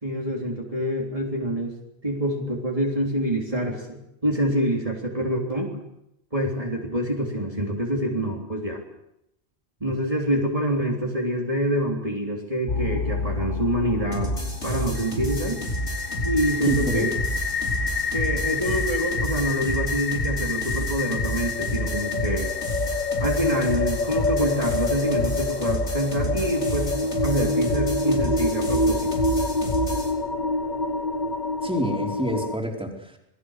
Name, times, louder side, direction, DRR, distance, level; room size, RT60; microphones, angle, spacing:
voice 1, 0.0-1.7 2.0-5.7 6.3-8.8 9.8-14.3 14.6-15.6 16.2-17.1 18.1-22.5 23.2-26.9 27.2-29.1, equal, 30° right, -2 dB, 3.6 m, -26 dB
sound 1, 12.7-32.6, left 3 dB, 45° left, 1.3 m, -27 dB
sound 2, 14.1-30.1, right 1 dB, 85° left, 5.2 m, -30 dB
voice 2, 16.7-17.1 31.6-33.2, equal, 5° right, 0 dB, 4.5 m, -27 dB
27.5 x 21.5 x 6.6 m, 0.82 s
omnidirectional pair, 1.1 m